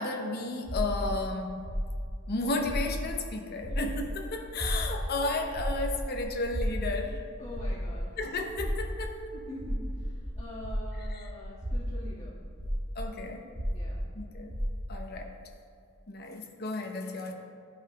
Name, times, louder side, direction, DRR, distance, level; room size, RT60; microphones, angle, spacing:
voice 1, 0.0-1.6 2.3-7.2 8.2-9.2 11.1-11.3 13.0-13.5 14.1-14.5 14.9-15.3 16.1-17.3, left 2 dB, 50° left, 3 dB, 0.7 m, -33 dB
sound 1, 0.7-3.3 3.6-11.1 11.5-15.0, equal, 55° right, 1.4 m, -33 dB
sound 2, 4.4-10.4, left 1 dB, 10° left, 0.3 m, -46 dB
voice 2, 7.4-8.1 9.3-12.3 13.7-14.0, left 1 dB, 35° left, -9 dB, 1.6 m, -44 dB
12.0 x 5.4 x 2.2 m, 2.2 s
head